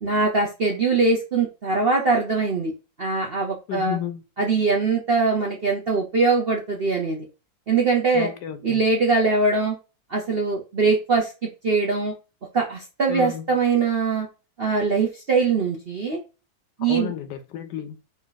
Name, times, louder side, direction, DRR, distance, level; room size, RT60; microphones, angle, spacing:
voice 1, 0.0-2.7 3.0-4.0 4.4-7.2 7.7-8.3 8.6-9.8 10.1-11.3 11.6-12.1 12.5-14.3 14.6-16.2 16.8-17.1, right 4 dB, 50° right, 0.7 m, -22 dB
voice 2, 3.7-4.2 8.1-8.8 13.1-13.5 16.9-18.0, left 10 dB, 75° left, 1.2 m, -32 dB
4.0 x 3.0 x 3.8 m
omnidirectional pair, 2.0 m